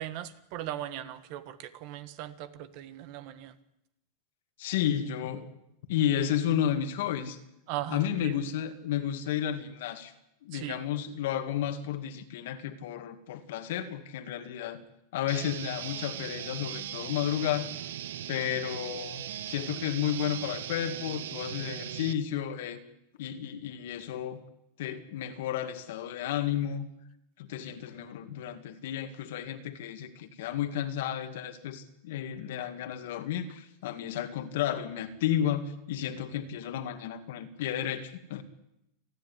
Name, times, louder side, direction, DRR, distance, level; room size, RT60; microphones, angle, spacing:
voice 1, 0.0-3.6 7.7-8.3 10.5-10.8, right 13 dB, 50° right, 14 dB, 1.4 m, -38 dB
voice 2, 4.6-5.5 5.9-7.4 7.9-10.1 10.4-14.8 15.1-17.7 18.3-22.8 23.2-24.4 24.8-26.9 27.4-38.4, left 10 dB, 70° left, 8 dB, 2.1 m, -32 dB
sound 1, 15.3-22.1, right 11 dB, 85° right, 1.0 m, -39 dB
29.5 x 10.5 x 9.9 m, 0.83 s
supercardioid pair, 150°, 0 cm